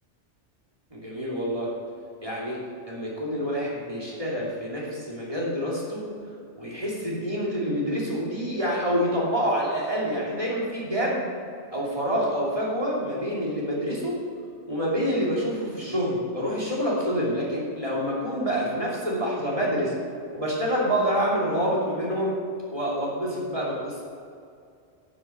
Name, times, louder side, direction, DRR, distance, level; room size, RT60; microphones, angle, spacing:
voice 1, 0.9-1.7 2.2-2.6 2.9-6.0 6.6-11.2 11.7-14.2 14.7-19.9 20.3-22.3 22.7-24.0, equal, 30° right, -5 dB, 2.8 m, -27 dB
9.4 x 8.4 x 6.5 m, 2.3 s
omnidirectional pair, 1.2 m